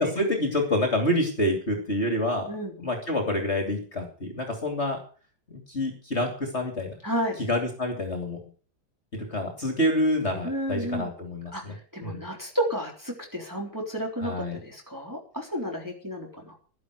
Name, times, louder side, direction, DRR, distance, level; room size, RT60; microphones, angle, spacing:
voice 1, 0.0-5.0 5.5-6.9 7.4-8.4 9.1-11.8 12.0-12.3 14.2-14.6, left 1 dB, 35° left, 3 dB, 3.0 m, -27 dB
voice 2, 7.0-7.4 10.4-11.1 11.5-11.6 11.9-14.3 14.7-16.5, equal, 10° right, -1 dB, 3.6 m, -31 dB
12.0 x 11.5 x 6.6 m, 0.40 s
omnidirectional pair, 2.2 m